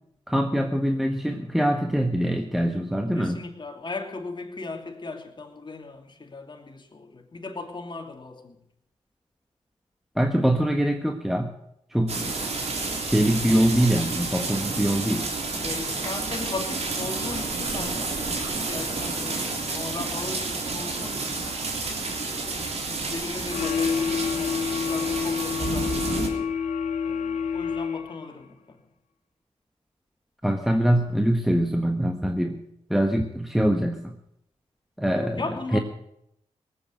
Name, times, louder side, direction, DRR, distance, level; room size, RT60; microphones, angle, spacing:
voice 1, 0.3-3.4 10.2-11.5 11.9-12.3 13.0-15.3 30.4-32.6 32.9-34.1 35.0-35.5 35.7-35.8, right 1 dB, ahead, 5 dB, 1.4 m, -23 dB
voice 2, 3.1-8.6 15.6-21.5 22.2-26.5 27.0-28.8 35.1-35.8, left 3 dB, 40° left, 3 dB, 2.9 m, -37 dB
sound 1, 12.1-26.3, right 3 dB, 60° right, 3.6 m, -30 dB
sound 2, 23.5-28.3, left 6 dB, 85° left, 0.9 m, -28 dB
19.0 x 8.6 x 8.0 m, 0.78 s
cardioid pair, 50°, 12 cm